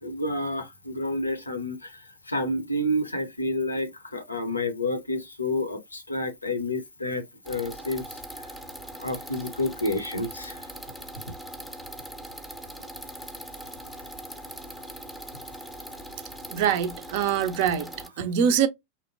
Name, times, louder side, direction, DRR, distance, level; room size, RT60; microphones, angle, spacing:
voice 1, 0.0-8.0 9.0-10.6, left 1 dB, 80° left, 0.6 m, -29 dB
sound 1, 7.4-18.1, right 1 dB, ahead, 0.6 m, -41 dB
voice 2, 16.5-18.7, right 8 dB, 50° right, 0.4 m, -24 dB
2.8 x 2.1 x 2.4 m
figure-of-eight pair, 90°, 0 cm